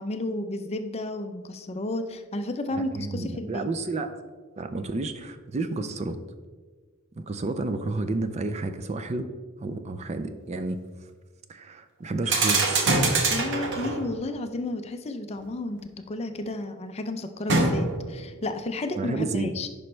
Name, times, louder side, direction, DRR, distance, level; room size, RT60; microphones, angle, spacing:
voice 1, 0.0-3.7 13.3-15.8 16.1-19.7, left 2 dB, 30° left, 8 dB, 0.5 m, -32 dB
voice 2, 2.7-4.1 4.6-6.2 7.2-9.3 9.6-10.8 11.5-12.8 19.0-19.5, right 3 dB, 30° right, 9 dB, 0.4 m, -31 dB
sound 1, 12.2-14.2 17.5-18.2, right 3 dB, 55° right, 1.1 m, -24 dB
10.0 x 5.3 x 3.2 m, 1.4 s
head